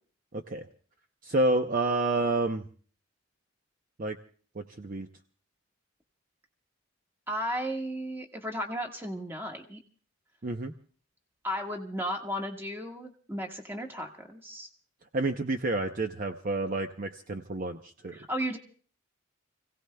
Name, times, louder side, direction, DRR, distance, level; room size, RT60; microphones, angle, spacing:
voice 1, 0.3-0.7 1.2-2.6 4.0-4.2 4.6-5.1 10.4-10.7 15.1-18.2, right 2 dB, 40° right, 6 dB, 0.7 m, -29 dB
voice 2, 7.3-9.8 11.4-14.7 18.1-18.6, equal, 10° right, 2 dB, 1.5 m, -34 dB
29.5 x 17.0 x 2.3 m, 0.44 s
head